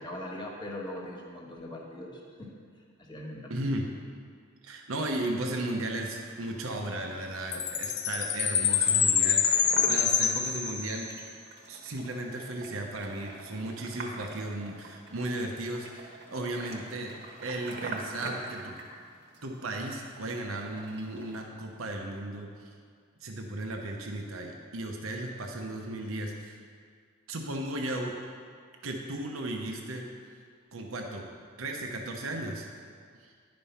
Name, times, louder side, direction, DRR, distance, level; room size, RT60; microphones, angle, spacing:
voice 1, 0.0-2.5 3.0-3.6, left 1 dB, 20° left, -1 dB, 1.3 m, -40 dB
voice 2, 3.5-3.9 4.6-11.1 11.7-17.1 17.4-18.8 19.4-22.7 23.2-26.6 27.3-28.1 28.8-30.1 30.7-31.3 31.6-32.7 33.2-33.3, right 1 dB, 80° right, 1 dB, 0.9 m, -35 dB
sound 1, 5.0-21.5, right 2 dB, 55° right, 1.2 m, -46 dB
Chime, 7.5-11.2, left 8 dB, 55° left, 0.5 m, -26 dB
10.5 x 5.3 x 5.6 m, 2.1 s
head